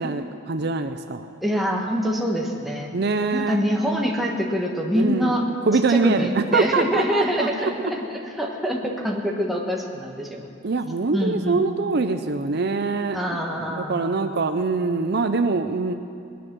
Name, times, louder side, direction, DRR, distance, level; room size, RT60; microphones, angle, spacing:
voice 1, 0.0-1.3 2.9-3.6 5.0-5.3 5.7-7.9 10.6-13.2 13.6-15.9, right 3 dB, 55° right, 8 dB, 0.6 m, -24 dB
voice 2, 1.4-2.9 3.3-5.4 5.9-10.5 11.1-11.7 13.1-14.2, equal, ahead, -1 dB, 1.5 m, -25 dB
20.0 x 10.5 x 6.2 m, 2.5 s
head